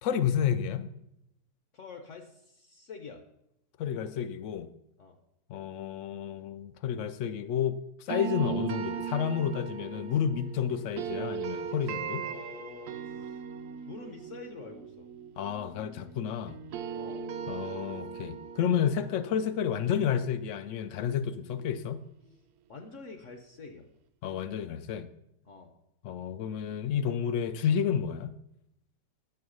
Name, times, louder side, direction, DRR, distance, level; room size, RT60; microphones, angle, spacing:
voice 1, 0.0-0.8 3.8-4.7 5.5-12.3 15.4-16.6 17.5-22.0 24.2-25.1 26.0-28.3, left 8 dB, 75° left, 0.7 m, -30 dB
voice 2, 1.7-3.2 5.0-5.2 12.2-13.4 13.8-15.1 16.9-17.3 22.7-23.9 25.4-25.7, left 4 dB, 55° left, 1.0 m, -46 dB
sound 1, 8.1-16.2 16.5-21.4, right 7 dB, 70° right, 1.1 m, -39 dB
9.2 x 4.7 x 6.3 m
omnidirectional pair, 1.8 m